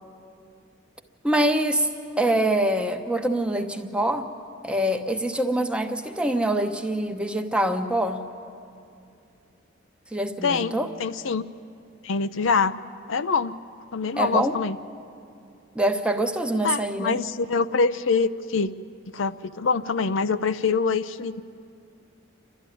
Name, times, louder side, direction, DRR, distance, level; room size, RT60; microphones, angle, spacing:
voice 1, 1.2-1.9 2.2-4.3 4.6-8.2 10.1-10.9 14.2-14.6 15.7-17.2, right 1 dB, 5° right, 5 dB, 0.9 m, -24 dB
voice 2, 10.4-10.7 11.0-11.4 12.0-12.8 13.1-13.5 13.9-14.8 16.6-18.7 19.1-21.4, left 5 dB, 75° left, 11 dB, 0.6 m, -24 dB
29.0 x 13.0 x 9.9 m, 2.5 s
head